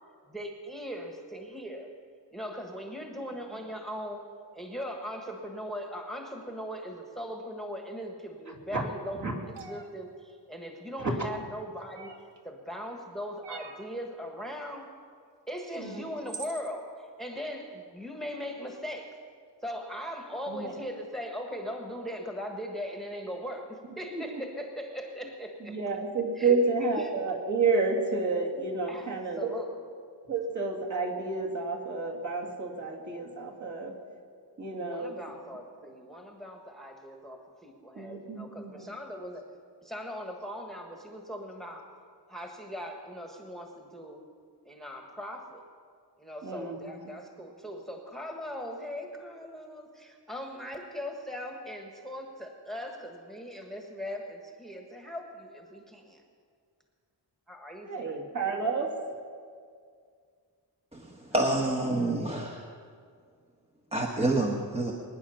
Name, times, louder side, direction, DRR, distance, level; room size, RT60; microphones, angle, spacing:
voice 1, 0.3-1.9 2.3-12.1 12.4-14.9 15.5-19.1 19.6-25.8 26.4-26.6 27.0-27.1 28.9-29.8 34.7-39.4 39.8-41.9 42.3-44.2 44.6-45.6 46.2-56.2 57.5-58.2 61.4-61.9, equal, ahead, 2 dB, 1.4 m, -39 dB
sound 1, 9.5-9.9 11.9-12.4 13.4-13.9 15.6-15.7 16.3-16.7, right 4 dB, 75° right, 1.3 m, -43 dB
voice 2, 15.8-16.1 20.5-20.7 24.1-24.4 25.6-29.5 30.3-33.9 34.6-35.1 38.0-38.9 46.4-47.1 57.9-58.9, right 4 dB, 45° right, -1 dB, 2.5 m, -30 dB
voice 3, 60.9-62.7 63.9-64.9, right 2 dB, 15° right, 0 dB, 1.0 m, -28 dB
22.5 x 10.0 x 5.8 m, 2.1 s
wide cardioid pair, 155°, 42 cm